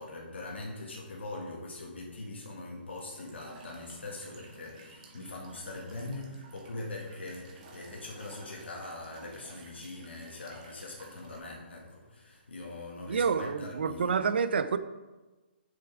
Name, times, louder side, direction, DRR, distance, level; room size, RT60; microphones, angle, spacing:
voice 1, 0.0-14.2, left 2 dB, 80° left, 1.9 m, -42 dB
Walk footsteps / Chirp tweet / Stream, 2.9-11.4, right 3 dB, 40° right, 2.3 m, -54 dB
voice 2, 13.1-14.8, right 6 dB, 65° right, 0.7 m, -28 dB
7.5 x 7.5 x 4.8 m
hypercardioid pair, 140°, 6 cm